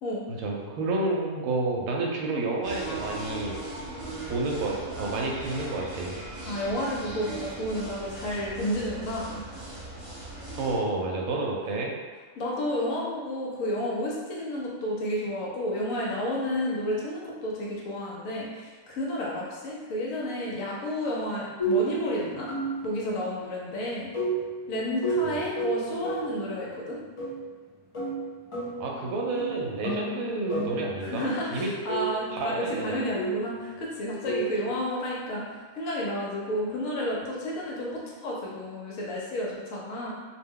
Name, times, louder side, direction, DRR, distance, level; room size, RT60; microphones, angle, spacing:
voice 1, 0.4-3.5 4.3-6.2 10.5-11.9 25.2-25.4 28.8-31.7 32.3-33.0, right 2 dB, 75° right, -1 dB, 1.0 m, -30 dB
sound 1, 2.6-10.8, right 2 dB, 30° right, 1.1 m, -38 dB
voice 2, 6.4-9.4 12.4-22.5 22.8-24.1 24.7-27.0 31.0-40.1, left 1 dB, 70° left, -4 dB, 1.0 m, -31 dB
sound 2, 21.6-23.0 24.1-26.4 27.2-27.5 27.9-28.9 29.3-31.1 31.6-33.5 34.3-34.6, right 2 dB, 55° left, 0.3 m, -31 dB
2.5 x 2.1 x 3.5 m, 1.4 s
omnidirectional pair, 1.5 m